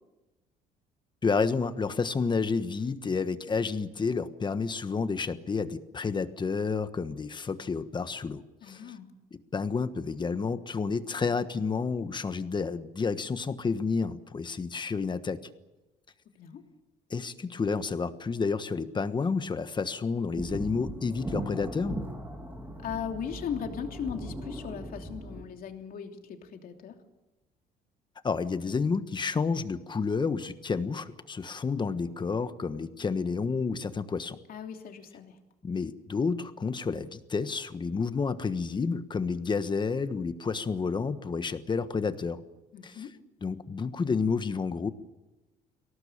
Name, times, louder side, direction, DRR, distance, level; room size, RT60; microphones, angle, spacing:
voice 1, 1.2-8.9 9.3-15.4 17.1-22.0 28.2-34.4 35.6-42.4 42.8-43.1 43.4-44.9, left 5 dB, 25° left, 11 dB, 1.3 m, -30 dB
voice 2, 8.6-9.1 16.3-16.6 22.8-26.9 34.5-35.3 42.7-43.1, left 7 dB, 60° left, 4 dB, 3.0 m, -38 dB
sound 1, 20.4-25.4, right 1 dB, 10° right, 3.8 m, -38 dB
23.0 x 18.0 x 8.8 m, 1.1 s
cardioid pair, 110°, 17 cm